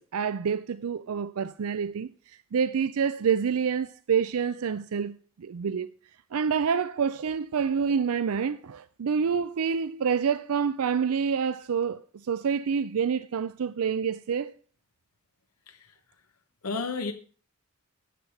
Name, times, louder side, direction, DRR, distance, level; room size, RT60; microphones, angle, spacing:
voice 1, 0.1-5.9 6.3-14.5, right 6 dB, 75° right, 0.4 m, -27 dB
voice 2, 15.7-16.0 16.6-17.1, left 4 dB, 85° left, 1.0 m, -32 dB
11.0 x 8.0 x 5.8 m
head